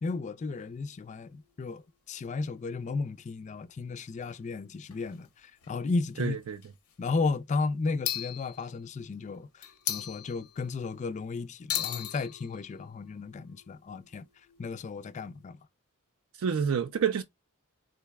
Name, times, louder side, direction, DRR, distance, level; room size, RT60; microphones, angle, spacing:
voice 1, 0.0-1.8 2.1-6.4 7.0-14.3 14.6-15.6, left 4 dB, 35° left, 0.3 m, -34 dB
sound 1, 0.6-1.7 2.4-2.5 2.7-2.8 4.3-4.4 4.9-5.3 5.6-5.8 6.5-6.9 8.0-9.1 9.6-10.9 11.7-15.5, left 10 dB, 85° left, 0.7 m, -39 dB
voice 2, 6.2-6.6 16.4-17.2, right 7 dB, 75° right, 0.4 m, -28 dB
3.8 x 2.1 x 3.4 m
head